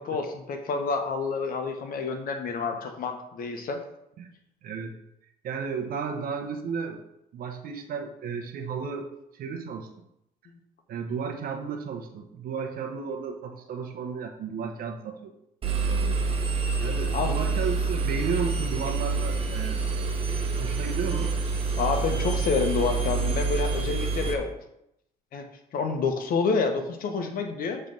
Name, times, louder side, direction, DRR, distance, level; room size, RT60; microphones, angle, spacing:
voice 1, 0.0-3.8 10.5-10.6 17.1-17.3 21.8-24.5 25.3-25.5 25.7-27.8, left 4 dB, 60° left, 5 dB, 1.1 m, -28 dB
voice 2, 4.6-4.9 5.4-7.0 7.3-9.9 10.9-15.3 15.9-16.3 16.8-19.8 20.6-21.3, right 6 dB, 60° right, 4 dB, 0.9 m, -33 dB
Engine, 15.6-24.3, right 4 dB, 35° right, 1.1 m, -27 dB
7.3 x 3.4 x 5.3 m, 0.81 s
cardioid pair, 110°, 17 cm